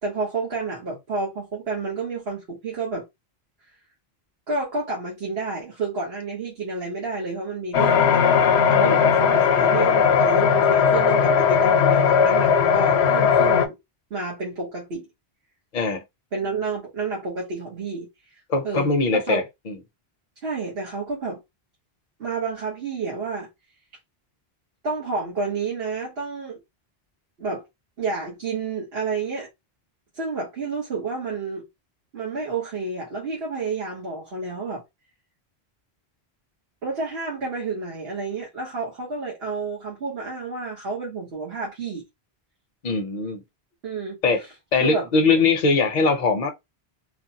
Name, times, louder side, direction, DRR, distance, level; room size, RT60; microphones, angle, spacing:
voice 1, 0.0-3.0 4.5-8.2 8.7-13.8 14.1-15.1 16.3-18.1 18.6-19.4 20.4-21.4 22.2-23.5 24.8-26.6 27.4-27.6 28.0-29.5 30.1-31.7 32.1-34.8 36.8-42.0 43.8-44.2 44.8-45.1, right 4 dB, 75° right, 1.3 m, -30 dB
sound 1, 7.7-13.7, left 7 dB, 85° left, 0.8 m, -18 dB
voice 2, 18.5-19.8 42.8-43.4 44.2-44.4 44.7-46.5, left 3 dB, 50° left, 0.7 m, -21 dB
3.2 x 2.1 x 2.7 m
omnidirectional pair, 1.1 m